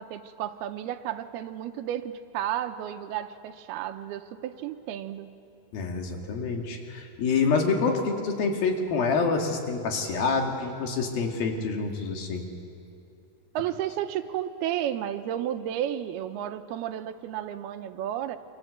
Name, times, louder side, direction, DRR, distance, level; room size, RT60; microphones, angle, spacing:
voice 1, 0.0-5.3 13.5-18.4, right 11 dB, 80° right, 8 dB, 2.7 m, -32 dB
voice 2, 5.7-12.5, left 4 dB, 65° left, 2 dB, 4.1 m, -27 dB
28.5 x 26.0 x 8.0 m, 2.7 s
omnidirectional pair, 4.8 m